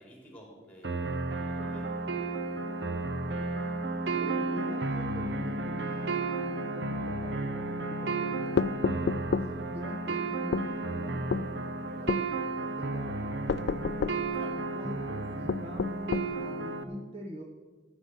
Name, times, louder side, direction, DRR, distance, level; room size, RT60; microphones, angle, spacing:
voice 1, 0.0-1.9 14.3-14.6, equal, 10° left, -1 dB, 4.0 m, -51 dB
sound 1, 0.8-16.8, right 3 dB, 75° right, 1.0 m, -33 dB
voice 2, 4.1-6.1 6.5-14.0 14.7-17.4, equal, 35° right, 1 dB, 1.3 m, -45 dB
sound 2, 8.6-9.5 10.5-10.7 11.3-11.5 12.1-12.3 13.5-14.2 15.5-16.3, left 5 dB, 65° left, 0.3 m, -29 dB
15.0 x 8.4 x 6.4 m, 1.4 s
head